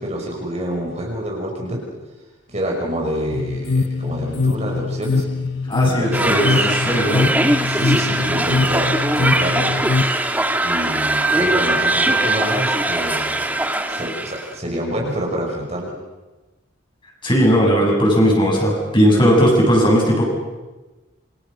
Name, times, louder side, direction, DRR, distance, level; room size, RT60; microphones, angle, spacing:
voice 1, 0.0-1.8 2.5-5.3 5.8-6.7 7.6-8.9 9.2-9.8 10.6-13.5 13.9-15.9, equal, 35° right, 0 dB, 5.7 m, -27 dB
sound 1, 3.3-10.1, left 4 dB, 75° left, 1.1 m, -22 dB
voice 2, 5.7-7.3 17.2-20.2, equal, 25° left, -2 dB, 7.7 m, -17 dB
sound 2, 6.1-14.5, right 2 dB, 10° right, 1.8 m, -21 dB
28.0 x 25.5 x 6.6 m, 1.2 s
head